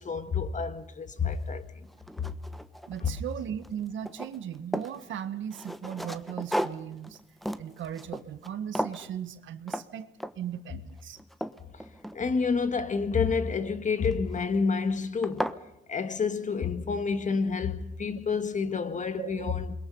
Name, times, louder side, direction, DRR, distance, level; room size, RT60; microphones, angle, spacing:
voice 1, 0.0-1.9 2.2-2.3 3.0-3.2 11.7-11.8 12.1-15.6 15.9-19.8, left 5 dB, 40° left, 1.8 m, -29 dB
sound 1, 1.3-1.4 1.9-3.3 3.6-5.0 5.5-8.5 8.8-9.1 9.7-9.9 10.2-10.6 11.0-12.6 14.0-14.4 14.9-15.0 15.2-15.6, equal, ahead, 1.1 m, -35 dB
voice 2, 2.9-7.2 7.6-10.1 10.4-11.2 19.2-19.5, right 9 dB, 75° right, 1.8 m, -37 dB
28.0 x 22.0 x 5.6 m
cardioid pair, 90°, 20 cm